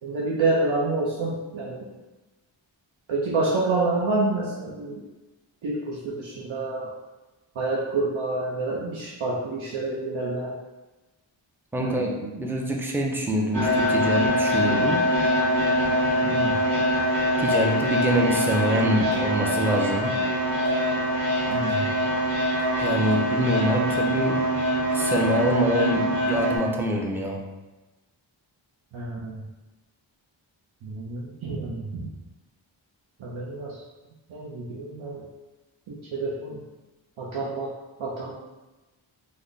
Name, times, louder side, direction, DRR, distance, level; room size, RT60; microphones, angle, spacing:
voice 1, 0.0-1.9 3.1-5.0 5.6-6.9 7.6-10.5 11.8-12.1 16.2-16.6 21.5-22.0 28.9-29.4 30.8-32.1 33.2-33.8 34.3-35.2 35.9-36.6 37.2-37.7 38.0-38.4, right 2 dB, 75° right, -5 dB, 0.6 m, -28 dB
voice 2, 11.7-15.0 17.4-20.1 22.8-24.4 24.9-27.4, equal, 5° right, 0 dB, 0.4 m, -25 dB
sound 1, 13.5-26.6, equal, 45° right, 1.2 m, -24 dB
3.2 x 2.1 x 3.8 m, 1.1 s
wide cardioid pair, 70°, 48 cm